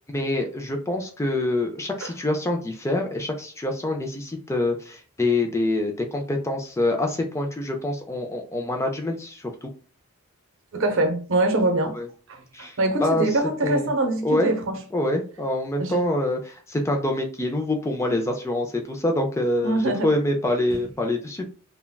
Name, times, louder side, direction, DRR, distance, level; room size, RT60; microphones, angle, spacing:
voice 1, 0.0-9.7 11.9-12.1 12.5-13.3 13.6-13.9 14.2-14.5 14.9-21.5, left 1 dB, 15° left, 0.3 m, -26 dB
voice 2, 10.7-12.0 12.3-14.7 15.8-16.0 19.6-20.1 20.7-20.8, right 2 dB, 60° right, 0.7 m, -24 dB
3.5 x 2.2 x 2.2 m
head